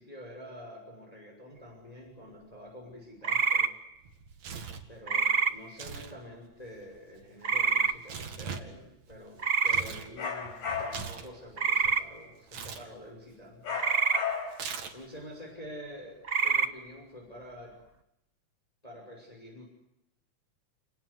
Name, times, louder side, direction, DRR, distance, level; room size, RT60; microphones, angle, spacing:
voice 1, 0.0-3.7 4.9-13.8 14.9-17.7 18.8-19.6, equal, 10° left, 1 dB, 6.0 m, -47 dB
sound 1, 3.2-3.7 5.1-5.5 7.4-7.9 9.4-9.8 11.6-12.0 13.8-14.2 16.2-16.7, right 5 dB, 55° right, 0.6 m, -26 dB
Tearing, 4.0-4.9 5.7-6.1 6.4-10.1 10.4-11.9 12.5-12.9 14.5-15.2, right 6 dB, 70° right, 3.5 m, -41 dB
sound 2, 10.2-11.2 13.6-14.7, left 6 dB, 85° left, 5.6 m, -34 dB
30.0 x 19.5 x 9.7 m, 0.88 s
omnidirectional pair, 3.4 m